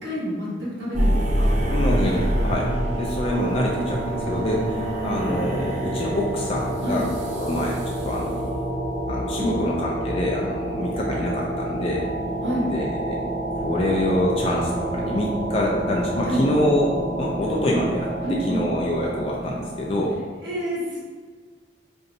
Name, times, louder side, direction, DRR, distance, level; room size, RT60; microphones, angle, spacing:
voice 1, 0.0-0.5 0.8-1.5 6.8-7.1 9.4-9.6 12.4-12.7 16.2-16.5 18.2-18.6 20.1-21.0, equal, 75° right, -5 dB, 1.1 m, -28 dB
sound 1, 0.9-20.1, right 1 dB, 40° right, 0.5 m, -27 dB
voice 2, 1.7-2.7 3.0-7.0 7.3-8.5 9.1-12.1 12.6-13.2 13.5-16.9 17.2-18.1 18.5-20.1, left 1 dB, 30° left, -2 dB, 0.3 m, -26 dB
4.2 x 2.6 x 2.6 m, 1.5 s
head